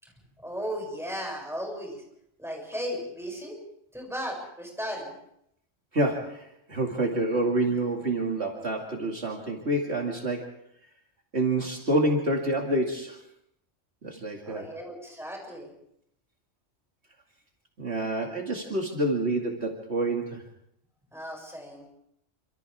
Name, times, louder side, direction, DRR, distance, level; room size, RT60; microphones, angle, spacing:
voice 1, 0.4-2.0 2.4-3.6 3.9-5.1 14.5-15.7 21.1-21.9, equal, ahead, 0 dB, 7.4 m, -35 dB
voice 2, 5.9-10.5 11.3-13.2 14.0-14.7 17.8-20.4, right 1 dB, 60° right, 0 dB, 2.7 m, -28 dB
28.5 x 26.0 x 3.6 m, 0.74 s
omnidirectional pair, 1.3 m